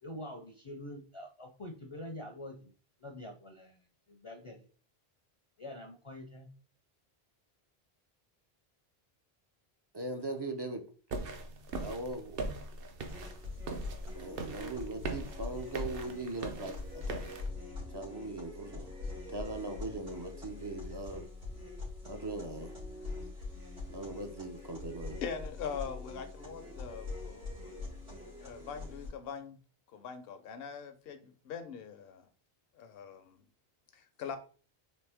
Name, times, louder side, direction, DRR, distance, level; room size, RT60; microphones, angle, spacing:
voice 1, 0.0-2.7 3.0-4.7 5.6-6.5, left 1 dB, 40° left, 0.5 m, -46 dB
voice 2, 9.9-10.8 11.8-12.4 14.2-17.3 17.9-19.0 19.3-21.3 22.0-22.8 23.9-25.3, right 2 dB, 35° right, 0.4 m, -40 dB
sound 1, 11.1-17.5, right 3 dB, 65° right, 0.8 m, -41 dB
sound 2, 13.1-29.1, left 3 dB, 90° right, 2.4 m, -43 dB
voice 3, 25.2-27.9 28.4-29.6 29.9-32.3 32.8-33.4 33.9-34.4, left 6 dB, 70° left, 0.8 m, -42 dB
4.1 x 3.2 x 3.4 m
omnidirectional pair, 1.0 m